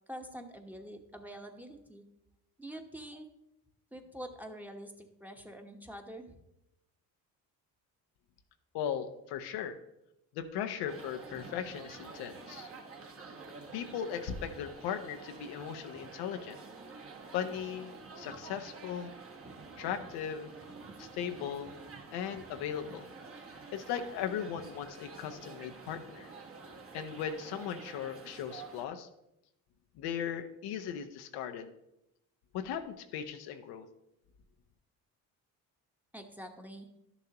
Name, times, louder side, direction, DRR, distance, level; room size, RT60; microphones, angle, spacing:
voice 1, 0.1-2.0 2.6-3.3 3.9-6.4 36.1-36.9, equal, 5° right, 4 dB, 1.1 m, -46 dB
voice 2, 8.7-9.8 10.3-12.7 13.7-16.6 17.3-19.1 19.8-20.5 21.0-21.7 22.1-23.1 23.7-26.3 26.9-29.1 30.0-31.7 32.5-33.9, left 8 dB, 85° left, 7 dB, 0.8 m, -38 dB
sound 1, 10.9-28.9, right 4 dB, 35° right, 1.4 m, -49 dB
11.0 x 7.0 x 2.9 m, 0.86 s
supercardioid pair, 70°, 38 cm